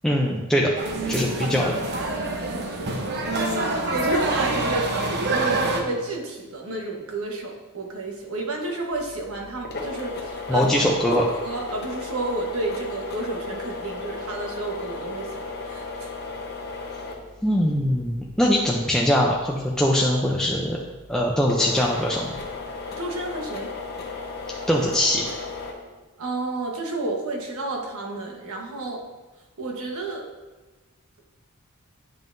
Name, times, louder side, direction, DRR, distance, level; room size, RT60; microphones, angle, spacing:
voice 1, 0.0-0.7 1.1-1.8 10.5-11.2 17.4-20.8 21.1-22.3 24.7-25.2, left 1 dB, 5° left, -3 dB, 0.5 m, -22 dB
sound 1, 0.8-5.8, right 2 dB, 50° right, 0.8 m, -26 dB
voice 2, 0.9-1.9 3.2-10.7 11.1-15.8 23.0-23.7 26.2-29.0 29.6-30.2, right 2 dB, 70° right, 0 dB, 1.2 m, -30 dB
sound 2, 8.9-25.7, left 3 dB, 50° left, 1.0 m, -36 dB
9.1 x 5.5 x 2.6 m, 1.2 s
head